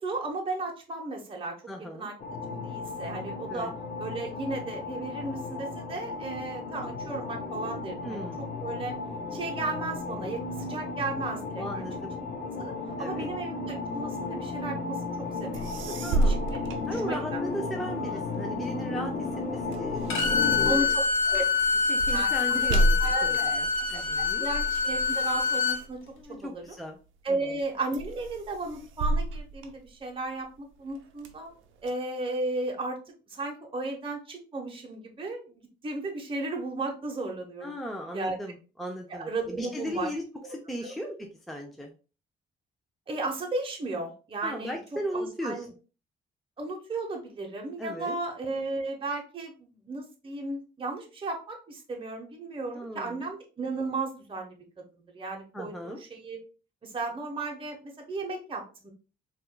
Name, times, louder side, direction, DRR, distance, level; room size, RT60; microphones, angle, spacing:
voice 1, 0.0-2.1 2.5-3.7 4.0-8.9 9.3-11.8 12.6-12.7 13.0-17.5 17.9-18.2 20.7-21.4 22.1-22.6 23.0-24.0 24.4-26.0 26.3-26.6 27.2-31.5 31.8-33.0 33.3-37.7 38.1-38.4 39.1-40.1 40.4-40.5 40.8-40.9 43.1-44.8 45.1-45.7 46.6-54.5 55.1-56.4 56.8-58.9, right 2 dB, 25° right, 1 dB, 0.8 m, -35 dB
voice 2, 1.7-2.1 3.5-3.7 8.0-8.5 11.6-12.1 13.0-13.3 16.0-16.4 16.9-21.0 21.9-24.5 26.2-27.0 27.3-27.6 37.6-40.2 40.5-41.2 41.5-41.9 44.4-45.7 47.8-48.2 52.7-53.2 55.5-56.0, equal, ahead, 2 dB, 0.5 m, -37 dB
sound 1, 2.2-20.7, left 3 dB, 45° left, 0.6 m, -34 dB
sound 2, 15.3-15.4 15.5-17.6 18.1-26.8 27.3-27.6 27.9-30.4 30.9-31.9, right 1 dB, 80° right, 0.6 m, -31 dB
Bowed string instrument, 20.1-25.8, left 5 dB, 85° left, 0.8 m, -26 dB
4.2 x 2.4 x 2.2 m, 0.34 s
cardioid pair, 90°, 20 cm